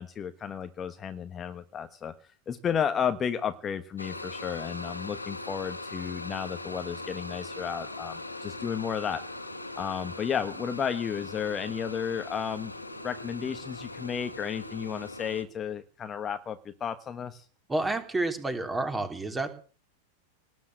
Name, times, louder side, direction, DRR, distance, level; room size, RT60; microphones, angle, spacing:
voice 1, 0.0-2.1 2.5-9.2 9.7-12.7 13.0-17.4, left 8 dB, 25° left, 9 dB, 1.3 m, -33 dB
sound 1, 4.0-15.4, left 2 dB, 85° left, 2.2 m, -40 dB
voice 2, 17.7-19.5, right 2 dB, 10° right, 8 dB, 3.3 m, -29 dB
19.5 x 9.5 x 7.8 m, 0.39 s
figure-of-eight pair, 90°, 0 cm